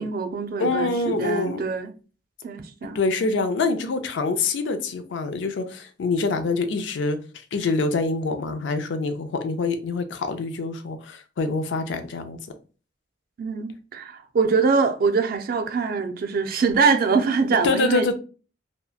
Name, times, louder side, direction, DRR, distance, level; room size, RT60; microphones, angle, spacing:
voice 1, 0.0-1.9 2.4-3.0 13.4-18.1, right 5 dB, 55° right, 0.4 m, -23 dB
voice 2, 0.6-1.6 2.8-7.2 7.5-12.4 17.6-18.1, left 3 dB, 85° left, 0.4 m, -25 dB
2.7 x 2.1 x 2.3 m
head